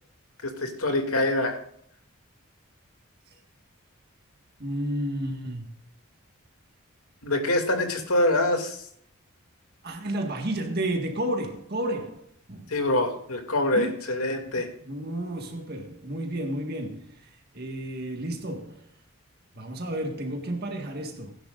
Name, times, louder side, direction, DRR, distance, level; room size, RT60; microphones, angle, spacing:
voice 1, 0.4-1.6 7.2-8.8 12.7-14.7, left 1 dB, 80° left, 2.6 m, -25 dB
voice 2, 4.6-5.6 9.8-12.7 13.7-14.0 14.5-17.3 17.5-18.9 19.5-21.4, right 1 dB, 45° right, 1.8 m, -32 dB
18.0 x 10.5 x 2.6 m
head